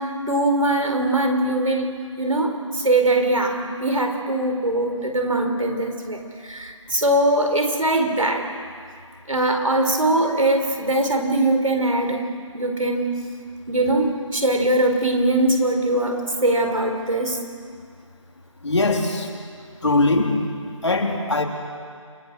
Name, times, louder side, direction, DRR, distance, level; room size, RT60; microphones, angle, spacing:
voice 1, 0.0-8.5 9.3-12.2 12.5-13.2 13.7-17.4, right 1 dB, 85° right, 5 dB, 4.5 m, -21 dB
voice 2, 18.6-19.3 19.8-20.4 20.8-21.4, left 2 dB, 60° left, 1 dB, 3.4 m, -20 dB
29.5 x 21.5 x 6.3 m, 2.1 s
figure-of-eight pair, 170°, 17 cm